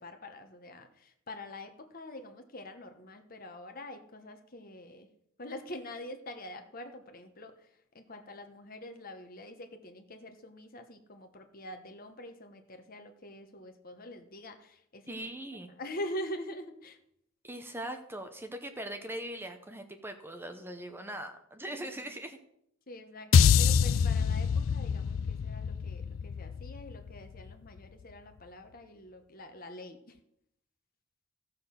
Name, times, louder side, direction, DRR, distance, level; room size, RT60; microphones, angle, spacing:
voice 1, 0.0-5.1 5.4-15.2 15.8-17.0 21.8-22.0 22.9-30.2, left 1 dB, 45° left, 7 dB, 1.1 m, -45 dB
voice 2, 15.1-15.7 17.4-22.4, right 1 dB, 10° right, 6 dB, 0.8 m, -41 dB
sound 1, 23.3-27.7, left 7 dB, 65° left, 0.4 m, -26 dB
14.5 x 6.7 x 5.8 m, 0.76 s
head